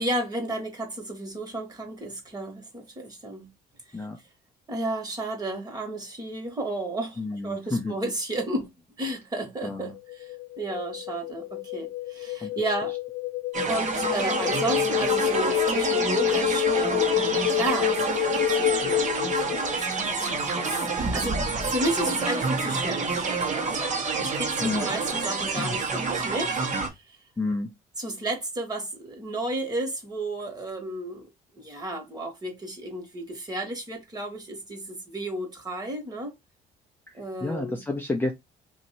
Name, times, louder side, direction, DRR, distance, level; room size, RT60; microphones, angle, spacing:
voice 1, 0.0-3.5 4.7-8.6 9.0-13.0 13.6-17.2 17.5-26.6 26.9-27.2 28.0-31.3 31.5-36.3 37.1-37.8, right 1 dB, 25° right, 1.4 m, -33 dB
voice 2, 7.2-7.9 9.6-9.9 12.4-12.5 24.6-24.9 25.5-25.8 27.4-27.7 37.1-38.3, left 2 dB, 10° left, 0.6 m, -30 dB
sound 1, 9.9-19.8, left 13 dB, 75° left, 0.5 m, -28 dB
sound 2, 13.5-26.9, right 4 dB, 45° right, 1.2 m, -28 dB
2.8 x 2.7 x 4.2 m
cardioid pair, 110°, 17 cm